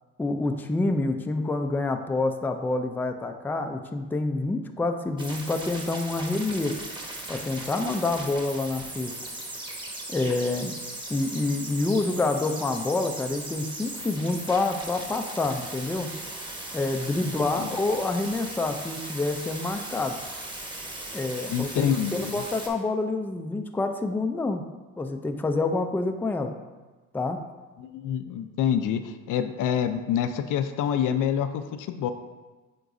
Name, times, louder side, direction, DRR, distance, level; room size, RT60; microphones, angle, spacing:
voice 1, 0.2-6.8 7.3-9.1 10.1-10.7 11.1-16.1 16.7-20.2 21.1-24.6 25.0-26.5 27.1-27.4, left 2 dB, 5° left, 6 dB, 0.4 m, -27 dB
sound 1, 5.2-22.7, right 1 dB, 15° right, 1.2 m, -38 dB
voice 2, 21.5-22.4 27.8-32.1, left 9 dB, 70° left, 9 dB, 0.5 m, -27 dB
9.6 x 3.9 x 2.6 m, 1.3 s
cardioid pair, 100°, 33 cm